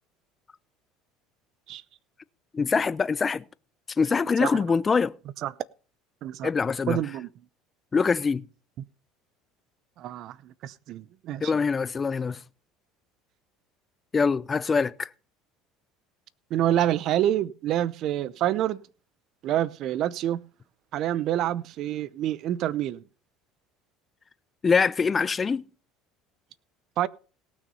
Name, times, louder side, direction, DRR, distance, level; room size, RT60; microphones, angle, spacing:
voice 1, 2.5-3.4 4.0-5.2 6.4-7.0 7.9-8.5 11.4-12.4 14.1-15.1 24.6-25.6, left 5 dB, 25° left, 0.6 m, -24 dB
voice 2, 6.9-7.3 10.0-11.5 16.5-18.8 19.4-20.4 20.9-23.0 27.0-27.1, right 12 dB, 55° right, 0.7 m, -27 dB
18.0 x 6.4 x 5.4 m
supercardioid pair, 100°, 0 cm